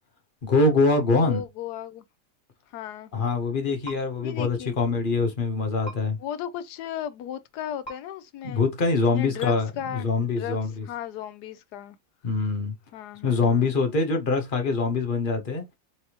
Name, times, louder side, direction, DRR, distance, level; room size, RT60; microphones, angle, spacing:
voice 1, 0.4-1.4 3.1-6.2 8.4-10.8 12.2-12.7 13.2-15.6, left 3 dB, 40° left, 0.9 m, -24 dB
voice 2, 1.2-2.0 2.7-3.1 4.2-4.8 6.2-8.6 9.1-12.0 12.9-13.7, left 9 dB, 80° left, 1.2 m, -35 dB
sound 1, 3.8-4.0 5.8-6.0 7.8-8.0 9.4-9.5, right 2 dB, 15° left, 1.7 m, -38 dB
4.2 x 3.4 x 2.9 m
omnidirectional pair, 1.7 m